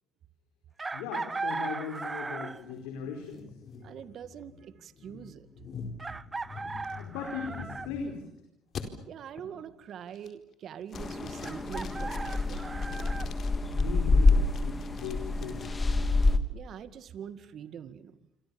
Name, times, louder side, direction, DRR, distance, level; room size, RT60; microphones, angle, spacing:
Chicken rooster, 0.8-2.7 4.4-4.5 6.0-7.9 11.4-13.3, right 3 dB, 25° right, 1.0 m, -37 dB
voice 1, 0.9-3.5 6.9-8.3 13.7-15.9, left 6 dB, 85° left, 3 dB, 4.7 m, -39 dB
sound 1, 1.9-8.3 8.8-8.9 9.4-9.7 10.1-10.5 10.9-13.8 14.3-16.3, left 6 dB, 55° left, 4.4 m, -46 dB
voice 2, 3.8-5.5 9.1-12.7 16.5-18.2, right 8 dB, 60° right, 12 dB, 2.1 m, -44 dB
sound 2, 10.9-16.4, left 3 dB, 25° left, 2.6 m, -27 dB
28.0 x 26.0 x 7.1 m, 0.80 s
supercardioid pair, 75°, 0 cm